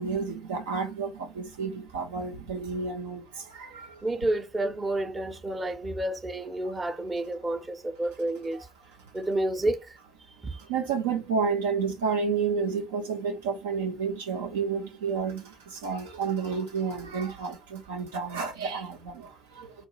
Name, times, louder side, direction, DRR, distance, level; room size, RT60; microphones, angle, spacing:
voice 1, 0.0-4.0 8.5-8.6 10.6-19.7, right 5 dB, 70° right, 0.6 m, -31 dB
voice 2, 4.0-8.7 9.1-10.0 10.4-10.6, right 1 dB, 25° right, 0.9 m, -30 dB
4.0 x 2.6 x 4.7 m
figure-of-eight pair, 50°, 0 cm